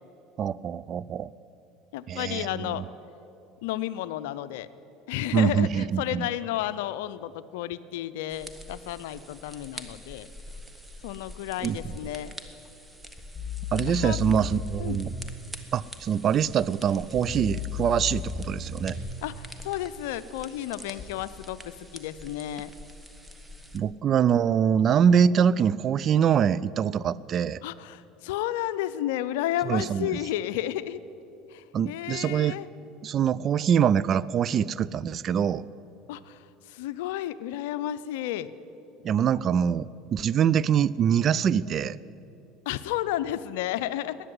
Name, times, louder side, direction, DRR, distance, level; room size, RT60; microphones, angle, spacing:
voice 1, 0.4-1.3 2.1-2.8 5.3-6.3 11.6-11.9 13.7-15.1 15.7-19.0 23.7-27.6 29.7-30.2 31.7-32.6 33.0-35.6 39.0-42.0, right 8 dB, 45° right, 19 dB, 0.4 m, -24 dB
voice 2, 1.9-2.9 3.6-4.7 5.1-10.3 11.0-12.4 13.9-14.2 14.8-15.0 19.2-22.7 27.6-31.0 31.5-32.7 36.1-38.5 42.7-44.2, left 13 dB, 75° left, 15 dB, 0.5 m, -32 dB
sound 1, 8.3-23.8, equal, 10° right, 1.3 m, -45 dB
sound 2, 13.3-15.3 17.1-19.1 21.0-21.1, left 6 dB, 30° left, 2.3 m, -34 dB
13.5 x 9.9 x 9.5 m, 2.9 s
hypercardioid pair, 80°, 0 cm